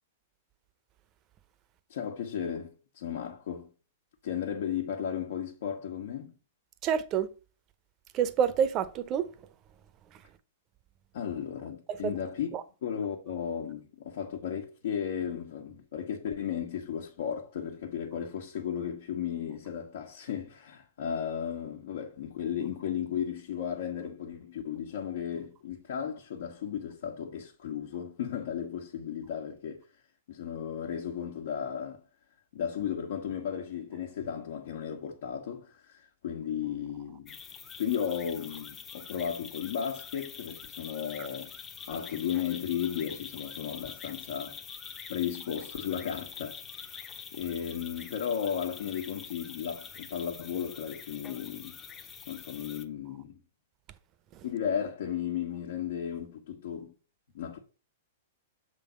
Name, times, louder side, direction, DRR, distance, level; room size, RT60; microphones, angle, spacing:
voice 1, 1.9-3.7 4.2-6.3 11.1-29.9 30.3-32.0 32.5-37.4 37.8-41.6 41.9-44.6 45.1-46.9 47.3-51.8 52.3-53.4 54.4-56.9 57.3-57.6, left 8 dB, 65° left, 1.4 m, -35 dB
voice 2, 6.8-7.3 8.1-9.3 10.1-10.2 11.9-12.2 12.5-12.6 41.2-41.3 54.3-54.4, right 8 dB, 35° right, 0.8 m, -28 dB
sound 1, 37.3-52.8, left 7 dB, 25° left, 0.9 m, -45 dB
6.9 x 3.8 x 5.2 m
hypercardioid pair, 115°, 0 cm